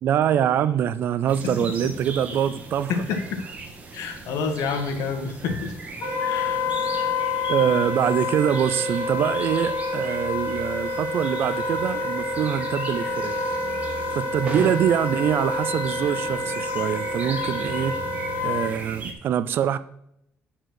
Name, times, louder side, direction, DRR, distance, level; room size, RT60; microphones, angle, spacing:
voice 1, 0.0-2.9 7.5-13.4 14.1-17.9 18.4-19.8, right 9 dB, 45° right, 15 dB, 0.4 m, -24 dB
sound 1, 1.3-19.1, right 3 dB, 25° right, 1.2 m, -38 dB
voice 2, 2.9-3.4 3.9-5.7 6.2-6.6, left 5 dB, 85° left, 6 dB, 1.7 m, -28 dB
Wind instrument woodwind instrument, 6.0-18.7, left 3 dB, 60° left, 3.2 m, -28 dB
9.1 x 4.5 x 6.4 m, 0.75 s
cardioid pair, 180°, 5 cm